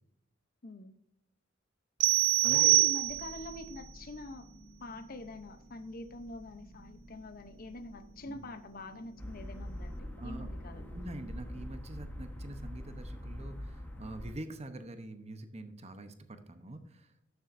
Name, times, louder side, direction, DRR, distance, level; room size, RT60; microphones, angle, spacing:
voice 1, 0.6-0.9 2.4-4.5 4.8-10.9, left 2 dB, 50° left, 10 dB, 0.7 m, -45 dB
sound 1, 2.0-3.5, right 18 dB, 75° right, 0.3 m, -25 dB
voice 2, 2.1-2.8 8.3-8.4 10.2-10.5 10.9-17.3, right 1 dB, 35° right, 9 dB, 0.8 m, -45 dB
sound 2, 3.0-11.7, equal, 75° left, 2.9 m, -54 dB
sound 3, 9.2-14.3, left 1 dB, 10° left, 1.2 m, -43 dB
12.5 x 7.0 x 2.6 m, 0.82 s
head